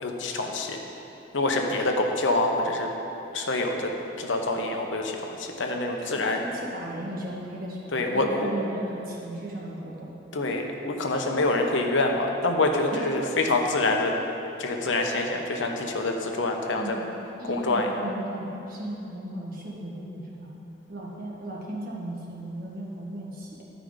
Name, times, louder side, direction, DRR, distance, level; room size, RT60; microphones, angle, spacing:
voice 1, 0.0-0.8 1.3-2.9 3.3-3.9 4.2-6.4 7.9-8.3 10.3-14.2 14.6-17.0 17.5-17.9, left 2 dB, 85° left, 2 dB, 0.9 m, -26 dB
voice 2, 6.0-10.1 12.9-13.1 16.8-17.1 17.4-20.5 20.9-23.6, right 1 dB, 50° right, -5 dB, 1.6 m, -36 dB
12.0 x 4.9 x 5.1 m, 3.0 s
head